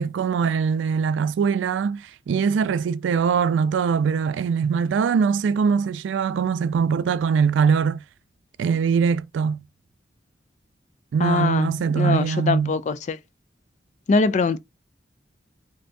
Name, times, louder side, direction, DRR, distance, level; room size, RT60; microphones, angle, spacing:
voice 1, 0.0-8.0 8.6-9.6 11.1-12.7, right 6 dB, 90° right, 0.3 m, -22 dB
voice 2, 11.2-13.2 14.1-14.6, left 4 dB, 40° left, 0.3 m, -23 dB
2.7 x 2.5 x 3.4 m
head